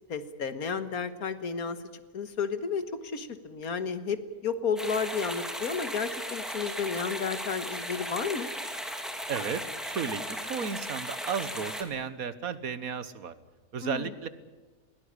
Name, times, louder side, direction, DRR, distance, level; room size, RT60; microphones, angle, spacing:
voice 1, 0.1-1.8 2.1-2.8 3.1-8.5 13.8-14.1, left 6 dB, 80° left, 11 dB, 1.9 m, -32 dB
sound 1, 4.8-11.8, equal, ahead, 2.5 m, -36 dB
voice 2, 9.3-13.3 13.7-14.3, right 6 dB, 75° right, 14 dB, 1.7 m, -34 dB
21.0 x 18.0 x 10.0 m, 1.3 s
omnidirectional pair, 1.5 m